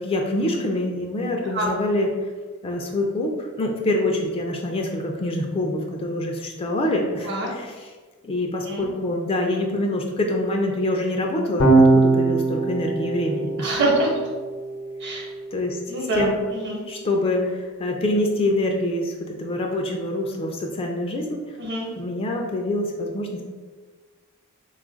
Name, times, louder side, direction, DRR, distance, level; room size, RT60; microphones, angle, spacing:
voice 1, 0.0-2.3 2.6-7.9 8.2-13.8 15.5-15.8 16.2-16.4 16.9-21.6 22.0-23.4, left 1 dB, 25° left, 1 dB, 0.4 m, -25 dB
Electric guitar / Bass guitar, 11.6-18.0, right 3 dB, 85° left, 0.7 m, -23 dB
voice 2, 13.6-14.1 15.0-15.3 15.9-16.8 21.6-21.9, right 1 dB, 50° right, -1 dB, 0.9 m, -25 dB
3.6 x 2.4 x 3.8 m, 1.4 s
head